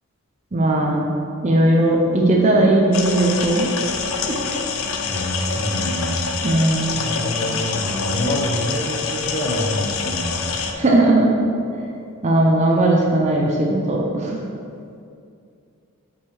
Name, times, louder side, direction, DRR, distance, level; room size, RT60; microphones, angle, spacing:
voice 1, 0.5-1.1 1.4-3.7 4.3-4.4 6.4-7.0 10.8-11.3 12.2-14.4, right 1 dB, 30° right, -1 dB, 0.5 m, -17 dB
sound 1, 2.9-10.7, left 5 dB, 60° left, 0.4 m, -26 dB
voice 2, 5.1-6.2 6.9-10.3, equal, 30° left, -4 dB, 0.9 m, -26 dB
5.5 x 5.3 x 3.2 m, 2.4 s
head